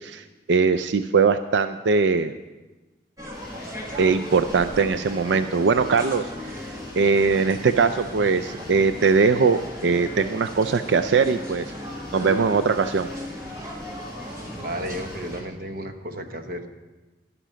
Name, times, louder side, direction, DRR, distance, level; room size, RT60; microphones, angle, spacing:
voice 1, 0.0-2.3 4.0-6.6 7.0-11.7 12.1-13.1, right 5 dB, 90° right, 10 dB, 0.4 m, -21 dB
sound 1, 3.2-15.4, left 1 dB, 20° right, 1.5 m, -37 dB
sound 2, 3.3-15.4, left 1 dB, ahead, 4.6 m, -45 dB
voice 2, 14.6-16.7, right 1 dB, 50° right, 6 dB, 1.0 m, -33 dB
12.0 x 11.5 x 5.0 m, 1.1 s
head